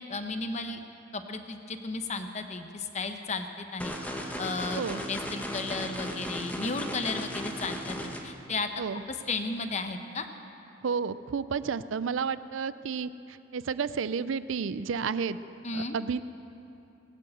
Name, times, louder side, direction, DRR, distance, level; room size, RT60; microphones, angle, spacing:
voice 1, 0.1-0.8 1.1-3.9 4.4-8.0 8.2-8.7 9.1-10.3 15.6-16.0, left 3 dB, 35° left, 7 dB, 0.8 m, -34 dB
sound 1, 3.8-8.2, equal, 10° left, 1.1 m, -36 dB
voice 2, 10.8-15.4 15.7-16.2, right 6 dB, 85° right, 15 dB, 0.4 m, -31 dB
20.0 x 8.4 x 7.9 m, 3.0 s
head